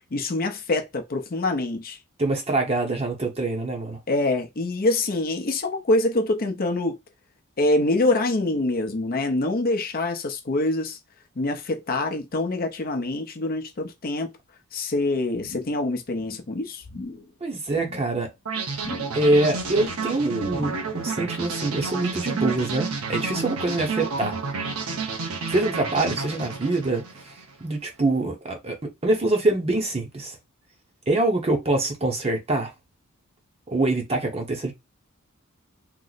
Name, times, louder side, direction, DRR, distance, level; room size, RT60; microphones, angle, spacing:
voice 1, 0.1-2.0 4.1-7.0 7.6-11.0 11.4-14.3 14.7-16.8, left 2 dB, 45° left, 0.6 m, -25 dB
voice 2, 2.2-4.0 17.4-18.3 19.1-24.3 25.5-27.0 27.6-30.4 31.1-32.7 33.7-34.7, right 2 dB, 30° right, 0.8 m, -24 dB
sound 1, 15.3-16.5 16.8-17.3 17.7-18.1 18.7-19.3 19.5-20.0 20.4-21.0 21.3-21.4, left 2 dB, 65° left, 0.9 m, -41 dB
sound 2, 18.5-27.5, right 4 dB, 75° right, 0.9 m, -30 dB
3.0 x 2.0 x 4.0 m
head